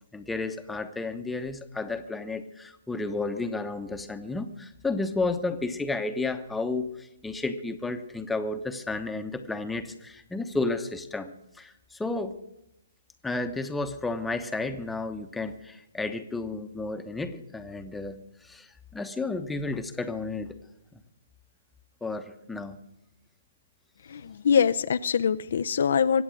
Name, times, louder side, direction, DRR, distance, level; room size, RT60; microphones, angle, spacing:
voice 1, 0.1-11.3 11.6-12.4 13.2-18.2 18.4-18.7 18.9-20.5 22.0-22.8, left 3 dB, 5° left, 7 dB, 1.0 m, -32 dB
voice 2, 24.1-26.2, left 7 dB, 60° left, 11 dB, 0.6 m, -23 dB
24.0 x 8.0 x 6.4 m, 0.85 s
figure-of-eight pair, 135°, 0 cm